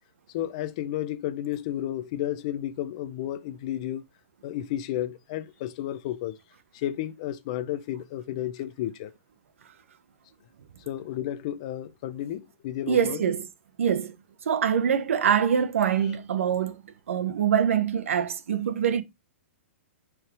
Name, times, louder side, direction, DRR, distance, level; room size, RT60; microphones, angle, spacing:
voice 1, 0.3-4.0 4.4-6.4 6.7-9.1 10.9-13.2, left 12 dB, 25° left, 0.5 m, -32 dB
voice 2, 12.9-13.5 13.8-14.1 14.5-16.8 17.1-19.0, right 8 dB, 75° right, 1.1 m, -24 dB
8.9 x 4.7 x 3.3 m
hypercardioid pair, 180°, 7 cm